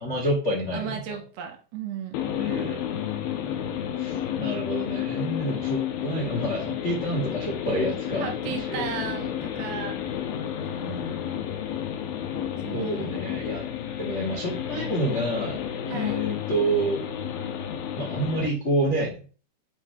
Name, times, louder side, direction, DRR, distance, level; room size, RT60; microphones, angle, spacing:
voice 1, 0.0-1.0 2.3-2.8 4.0-8.9 10.4-10.5 10.8-11.2 12.7-13.7 14.0-15.6 15.9-17.0 17.9-19.2, right 1 dB, 45° left, -4 dB, 0.9 m, -28 dB
voice 2, 0.7-2.2 8.2-10.0 12.4-13.2 15.9-16.2, right 7 dB, 75° right, 3 dB, 3.3 m, -35 dB
sound 1, 2.1-18.5, left 9 dB, 75° left, 2.4 m, -31 dB
8.9 x 3.9 x 4.5 m, 0.38 s
omnidirectional pair, 5.0 m